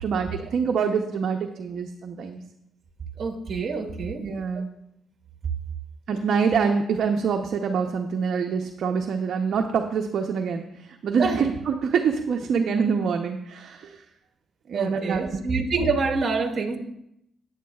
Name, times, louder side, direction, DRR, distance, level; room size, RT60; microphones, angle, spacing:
voice 1, 0.0-2.4 4.2-4.7 6.1-14.0 14.7-15.4, right 6 dB, 60° right, 3 dB, 0.7 m, -25 dB
voice 2, 3.2-4.2 4.5-4.6 11.2-11.4 14.7-16.8, right 4 dB, 45° right, 5 dB, 1.4 m, -26 dB
14.0 x 9.4 x 2.4 m, 0.81 s
cardioid pair, 90°, 0 cm